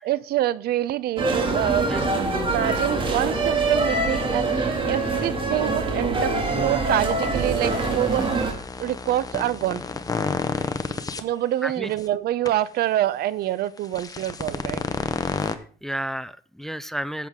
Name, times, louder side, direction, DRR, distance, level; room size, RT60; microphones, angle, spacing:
voice 1, 0.0-2.0 2.5-8.5 8.8-9.8 11.2-14.8, right 13 dB, 70° right, 0.6 m, -26 dB
sound 1, 1.2-8.5, right 3 dB, 30° right, 2.2 m, -24 dB
sound 2, 7.4-11.2 11.8-12.0 12.5-12.6 13.8-15.5, left 4 dB, 20° left, 0.9 m, -30 dB
voice 2, 15.8-17.3, right 1 dB, ahead, 0.4 m, -31 dB
13.5 x 7.8 x 3.6 m
cardioid pair, 110°, 17 cm